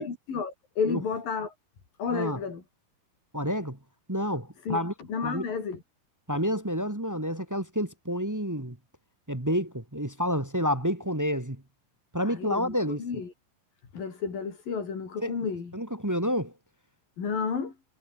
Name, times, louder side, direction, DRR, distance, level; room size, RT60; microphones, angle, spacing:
voice 1, 0.0-1.5 2.0-2.6 4.7-4.8 5.1-5.8 12.2-13.3 13.9-15.7 17.2-17.7, left 5 dB, 90° left, 6.6 m, -31 dB
voice 2, 3.3-3.8 4.1-4.9 5.2-5.4 6.3-8.8 9.3-11.6 12.1-13.0 15.2-15.4 15.7-16.5, equal, 10° right, 0.7 m, -29 dB
omnidirectional pair, 3.9 m